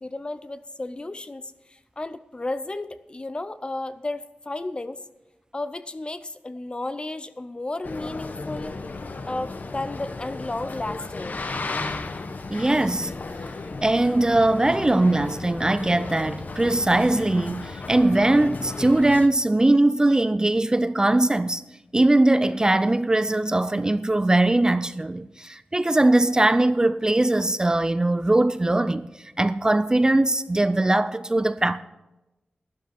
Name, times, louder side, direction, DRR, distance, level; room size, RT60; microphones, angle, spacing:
voice 1, 0.0-5.0 5.5-8.8 9.3-11.4, left 2 dB, 30° left, 0.6 m, -33 dB
Boat Water vehicle, 7.8-19.3, left 3 dB, 55° left, 0.9 m, -34 dB
voice 2, 12.5-13.1 13.8-21.6 21.9-29.1 29.4-31.8, right 2 dB, 20° right, 0.4 m, -21 dB
12.0 x 12.0 x 4.2 m
wide cardioid pair, 95°, 3 cm